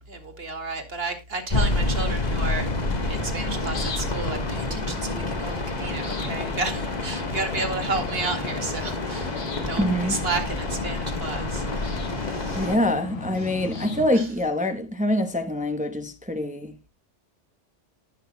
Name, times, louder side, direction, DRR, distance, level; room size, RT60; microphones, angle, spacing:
voice 1, 0.0-2.7 3.0-9.4 9.7-12.7 13.4-13.5 14.1-14.3, right 3 dB, 55° right, 2.4 m, -32 dB
sound 1, 1.5-12.8, left 2 dB, 35° left, 1.5 m, -28 dB
sound 2, 2.3-14.1, left 3 dB, 75° left, 1.9 m, -36 dB
voice 2, 9.8-10.2 12.6-16.9, left 1 dB, 5° right, 0.9 m, -25 dB
19.0 x 6.5 x 2.2 m
omnidirectional pair, 1.2 m